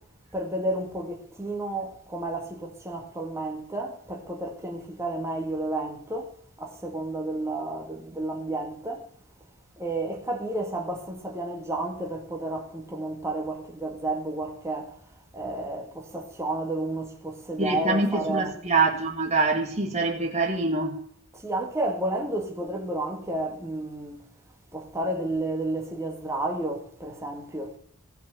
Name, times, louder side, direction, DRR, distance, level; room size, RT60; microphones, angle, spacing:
voice 1, 0.3-6.3 6.6-9.1 9.8-15.0 15.3-18.6 21.3-24.2 24.7-27.7, right 2 dB, 15° right, 1.9 m, -31 dB
voice 2, 17.6-21.0, right 3 dB, 30° right, 1.9 m, -25 dB
17.0 x 5.8 x 8.4 m
head